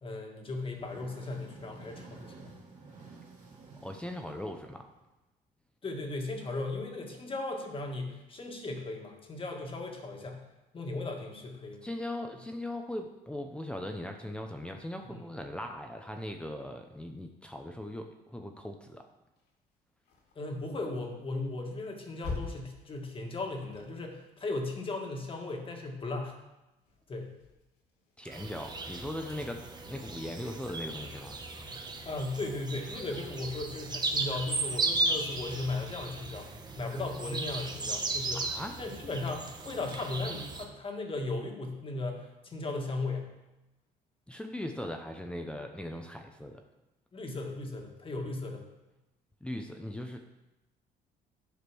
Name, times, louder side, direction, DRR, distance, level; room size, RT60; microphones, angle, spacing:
voice 1, 0.0-2.5 5.8-10.5 10.7-11.8 15.0-15.3 20.4-26.4 27.1-27.3 32.0-36.5 36.8-38.5 38.8-43.3 47.1-48.7, left 2 dB, 30° left, 2 dB, 1.8 m, -37 dB
sound 1, 0.5-5.1, right 4 dB, 45° right, 2.7 m, -52 dB
voice 2, 3.8-4.8 11.8-19.0 28.2-31.4 38.3-38.8 44.3-46.6 49.4-50.2, left 1 dB, 5° left, 4 dB, 0.8 m, -39 dB
sound 2, 19.4-25.9 26.3-36.1, left 3 dB, 75° left, 2.8 m, -49 dB
sound 3, 28.3-40.6, right 3 dB, 25° right, 1.1 m, -36 dB
9.9 x 5.1 x 6.2 m, 0.99 s
cardioid pair, 110°, 17 cm